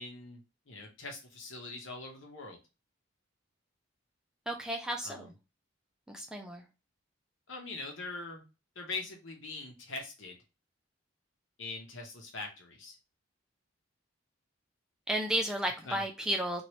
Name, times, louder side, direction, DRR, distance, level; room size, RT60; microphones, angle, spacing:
voice 1, 0.0-2.6 5.0-5.3 7.5-8.4 8.7-10.4 11.6-12.9 15.8-16.0, left 3 dB, 75° left, 1 dB, 1.0 m, -42 dB
voice 2, 4.5-5.3 6.1-6.6 15.1-16.6, right 1 dB, 5° right, 2 dB, 0.3 m, -33 dB
3.0 x 2.6 x 3.0 m, 0.28 s
head